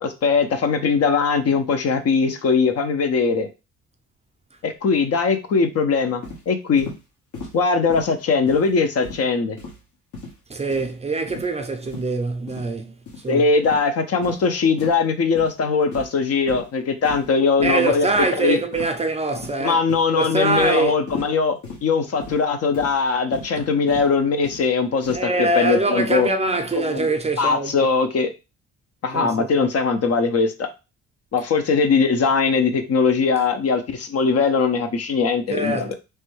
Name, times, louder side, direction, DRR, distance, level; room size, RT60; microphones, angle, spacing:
voice 1, 0.0-3.5 4.6-6.9 7.5-9.6 13.3-18.6 19.6-26.3 26.8-27.1 27.4-28.3 29.0-30.7 31.3-35.9, left 5 dB, 55° left, 0.7 m, -20 dB
sound 1, 6.2-6.4 6.8-7.0 7.3-7.6 7.9-8.1 8.5-8.7 9.0-9.2 9.6-9.8 10.1-10.4 10.7-10.9 11.3-11.5 11.8-12.1 12.5-12.7 13.1-13.2 13.6-13.8 14.2-14.4 14.8-15.0 15.3-15.5 15.9-16.2 16.5-16.7 17.0-17.3 17.6-17.8 18.2-18.3 18.7-19.0 19.4-19.6 19.9-20.1 20.5-20.7 21.1-21.3 21.6-21.8 22.2-22.4 22.7-23.0 23.3-23.5 23.9-24.1 24.4-24.6 25.0-25.2, left 3 dB, 80° left, 1.4 m, -36 dB
voice 2, 10.5-12.9 13.2-13.4 17.6-19.8 20.1-21.0 25.1-27.7 29.1-29.7 35.5-35.9, right 2 dB, 20° right, 0.5 m, -23 dB
3.2 x 2.2 x 3.1 m
cardioid pair, 90°, 30 cm